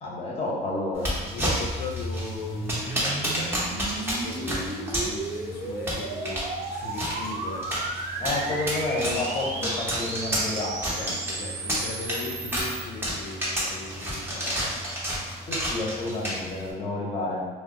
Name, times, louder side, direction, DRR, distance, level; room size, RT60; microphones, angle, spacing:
voice 1, 0.0-1.2 8.2-10.8 15.5-17.5, left 2 dB, 40° left, -3 dB, 0.8 m, -30 dB
sound 1, 0.9-16.7, equal, 15° right, 0.8 m, -31 dB
voice 2, 1.2-8.4 11.0-14.8, left 3 dB, 70° left, 1 dB, 0.5 m, -38 dB
sound 2, 1.5-12.8, right 3 dB, 50° right, 0.5 m, -35 dB
2.2 x 2.1 x 3.8 m, 1.3 s
cardioid pair, 110°, 17 cm